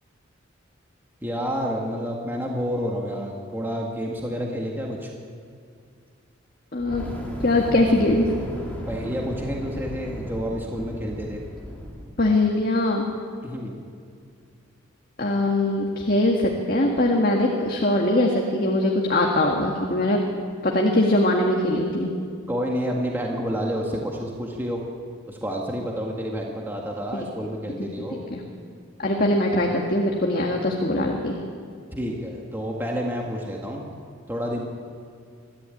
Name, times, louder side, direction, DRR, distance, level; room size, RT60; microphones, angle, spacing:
voice 1, 1.2-5.1 8.9-11.4 13.4-13.8 22.5-24.8 25.3-28.2 31.9-33.9 34.3-34.6, equal, 10° right, -1 dB, 1.8 m, -29 dB
voice 2, 6.7-7.0 7.4-8.3 12.2-13.1 15.2-20.2 20.6-22.1 27.1-27.3 28.1-28.4 29.0-31.4, left 1 dB, 45° left, 0 dB, 1.9 m, -22 dB
Fire, 6.8-12.1, equal, 5° left, 3.3 m, -35 dB
22.5 x 14.5 x 9.1 m, 2.2 s
head